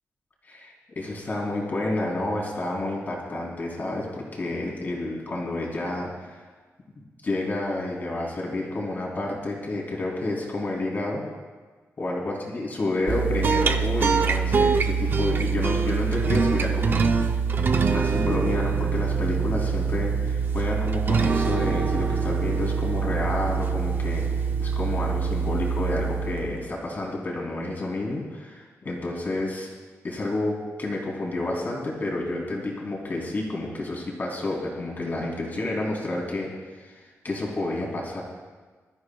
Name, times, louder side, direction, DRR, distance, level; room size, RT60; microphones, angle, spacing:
voice 1, 0.4-6.4 7.0-11.2 12.0-17.3 17.9-29.7 30.0-38.2, left 2 dB, 35° left, -2 dB, 2.9 m, -30 dB
sound 1, 13.1-26.6, right 5 dB, 45° right, 0.6 m, -24 dB
21.5 x 13.5 x 2.3 m, 1.4 s
wide cardioid pair, 165°, 5 cm